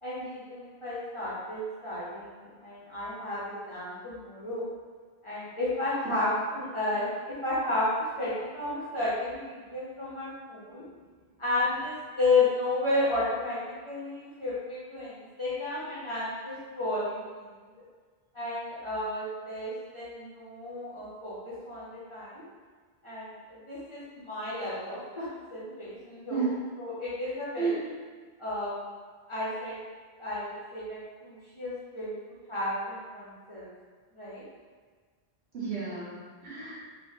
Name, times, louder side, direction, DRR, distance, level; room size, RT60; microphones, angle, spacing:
voice 1, 0.0-4.6 5.2-10.8 11.4-17.8 18.3-22.4 23.0-26.5 26.8-27.7 28.4-28.8 29.3-29.8 30.2-33.7 34.1-34.4, left 2 dB, 30° left, -10 dB, 1.0 m, -32 dB
voice 2, 35.5-36.8, right 5 dB, 80° right, -8 dB, 1.4 m, -32 dB
3.5 x 2.6 x 2.7 m, 1.5 s
omnidirectional pair, 1.1 m